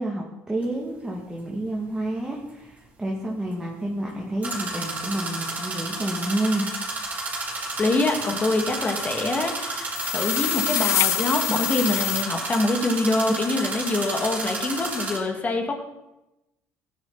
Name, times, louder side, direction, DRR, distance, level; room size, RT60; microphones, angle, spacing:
voice 1, 0.0-6.7, right 1 dB, 10° right, -3 dB, 2.2 m, -29 dB
sound 1, 0.6-0.7 4.4-15.2, right 2 dB, 25° right, 4.2 m, -31 dB
voice 2, 7.8-15.8, left 2 dB, 30° left, 3 dB, 2.1 m, -25 dB
sound 2, 10.0-12.2, left 12 dB, 60° left, 0.4 m, -25 dB
16.0 x 10.0 x 4.1 m, 0.94 s
cardioid pair, 115°, 6 cm